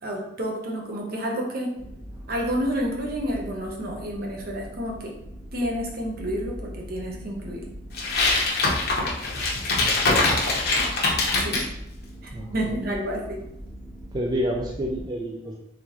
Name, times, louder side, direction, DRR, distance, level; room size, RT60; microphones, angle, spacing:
voice 1, 0.0-1.7 2.3-5.1 5.5-7.7 11.4-11.7 12.2-13.4, equal, 60° right, -1 dB, 0.9 m, -29 dB
sound 1, 1.7-15.1, equal, ahead, 0.8 m, -41 dB
sound 2, 7.9-11.7, left 3 dB, 60° left, 1.0 m, -23 dB
voice 2, 9.8-10.5 12.3-12.8 14.1-15.6, equal, 25° right, -1 dB, 0.3 m, -29 dB
3.7 x 3.5 x 3.0 m, 0.82 s
head